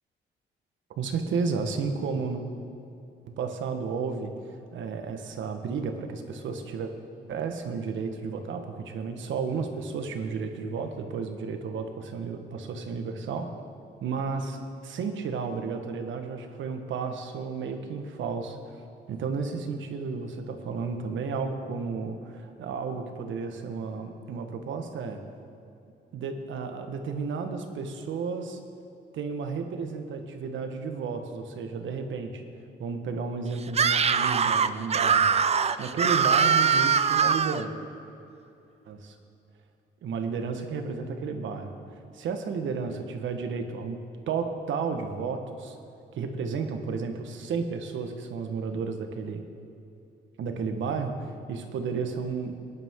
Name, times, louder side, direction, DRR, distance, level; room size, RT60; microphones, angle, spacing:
voice 1, 1.0-2.4 3.3-6.9 7.3-13.5 14.0-25.2 26.1-28.6 29.1-32.4 32.8-35.3 35.8-37.7 38.9-39.1 40.0-44.0 44.3-45.8 46.1-49.4 50.4-52.5, right 5 dB, 75° right, 6 dB, 1.4 m, -32 dB
Screaming, 33.7-37.6, right 6 dB, 35° right, 0.5 m, -22 dB
19.5 x 10.5 x 3.7 m, 2.7 s
cardioid pair, 90°, 20 cm